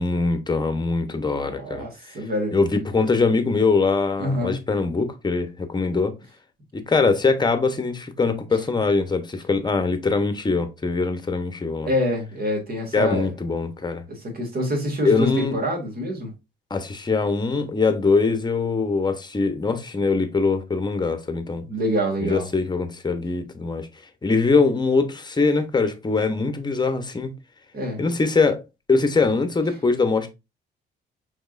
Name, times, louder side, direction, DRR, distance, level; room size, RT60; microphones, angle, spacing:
voice 1, 0.0-1.9 2.5-6.1 6.7-11.9 12.9-14.0 15.0-15.6 16.7-21.6 22.2-23.9 24.2-27.4 28.0-28.6 28.9-30.3, left 4 dB, 20° left, 0.9 m, -22 dB
voice 2, 1.4-2.5 4.2-4.6 11.8-13.3 14.1-16.3 21.7-22.5 27.7-28.0, equal, 50° right, 2.2 m, -26 dB
5.2 x 3.7 x 2.5 m
cardioid pair, 90°, 20 cm